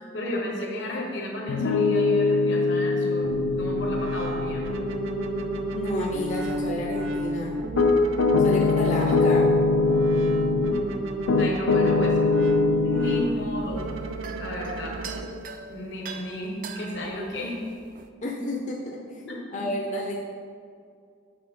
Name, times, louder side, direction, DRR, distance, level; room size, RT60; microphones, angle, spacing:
voice 1, 0.1-3.3 3.6-4.7 11.2-12.1 12.8-13.9 14.4-15.0 15.7-17.6 19.2-19.6, left 1 dB, 60° left, -2 dB, 1.1 m, -33 dB
Piano, 1.5-10.8 11.3-13.3, left 3 dB, 85° left, 0.4 m, -23 dB
sound 1, 3.2-15.2, right 1 dB, 85° right, 0.6 m, -32 dB
voice 2, 5.7-7.6 8.4-9.5 18.2-19.2 19.5-20.1, left 1 dB, 35° left, -2 dB, 0.7 m, -31 dB
sound 2, 13.0-18.1, right 6 dB, 40° right, 0.4 m, -42 dB
6.7 x 6.6 x 3.8 m, 2.3 s
head